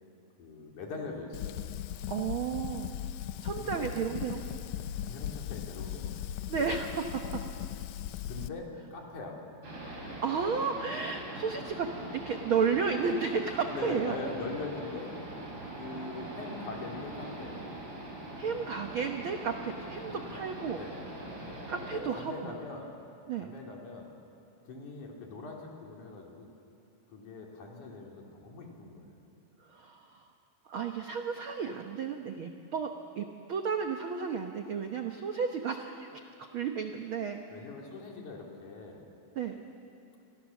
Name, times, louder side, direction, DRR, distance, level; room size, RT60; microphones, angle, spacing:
voice 1, 0.4-1.6 3.6-3.9 5.1-6.1 8.3-9.4 13.7-15.1 15.7-17.7 20.1-20.4 20.7-21.0 21.4-22.9 23.4-24.1 24.6-26.5 27.1-29.2 37.5-39.0, left 3 dB, 60° left, 0 dB, 4.4 m, -42 dB
Fire, 1.3-8.5, left 11 dB, 90° left, 1.5 m, -38 dB
voice 2, 2.1-2.9 3.4-4.4 6.5-7.4 10.2-14.2 18.4-20.8 21.7-22.5 23.3-23.5 29.7-30.3 30.7-36.2 36.5-37.4 39.3-39.6, right 6 dB, 80° right, 4 dB, 1.1 m, -33 dB
sound 1, 9.6-22.0, right 1 dB, 35° right, 5.3 m, -42 dB
29.0 x 23.5 x 7.2 m, 2.7 s
omnidirectional pair, 4.0 m